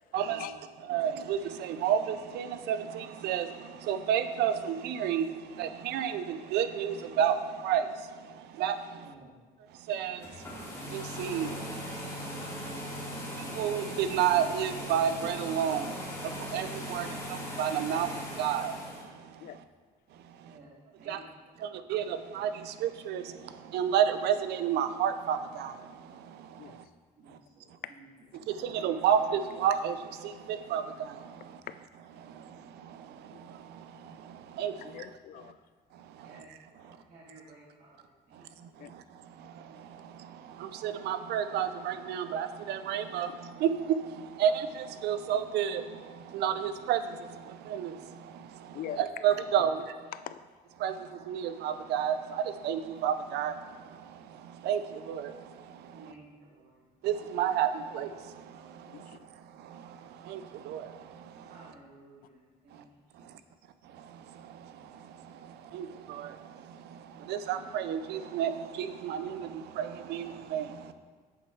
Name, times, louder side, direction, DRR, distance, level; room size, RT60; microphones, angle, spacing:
voice 1, 0.2-1.0 8.9-9.3 20.4-20.7 21.0-21.9 27.2-28.1 28.4-28.5 36.2-38.5 49.3-49.7 55.9-56.8 61.5-62.8 63.1-63.3, right 2 dB, 60° right, -8 dB, 2.4 m, -55 dB
voice 2, 0.9-2.8 3.2-3.5 3.9-5.3 5.6-7.4 7.6-7.8 8.6-8.7 9.9-10.2 10.9-11.5 13.6-15.8 16.5-17.1 17.6-18.1 18.4-18.7 21.1-21.2 21.9-22.5 22.8-23.2 23.7-25.7 28.8-29.9 30.7-30.8 34.6-34.7 40.8-43.3 43.6-43.7 44.4-44.5 45.0-45.8 46.3-47.0 47.7-47.9 49.0-49.8 50.8-50.9 51.3-52.1 52.6-53.5 54.7-54.8 55.1-55.2 57.0-57.7 57.9-58.1 60.3-60.4 60.7-60.8 65.7-65.9 67.3-68.5 68.8-69.4 69.8-70.2 70.5-70.6, right 9 dB, 75° right, 10 dB, 0.6 m, -29 dB
sound 1, 10.1-19.0, equal, 15° left, 2.6 m, -39 dB
voice 3, 34.8-35.6 38.8-38.9 48.7-49.0 50.1-50.4 58.9-59.3, left 11 dB, 60° left, 13 dB, 0.4 m, -42 dB
7.3 x 6.3 x 4.7 m, 1.5 s
cardioid pair, 110°, 17 cm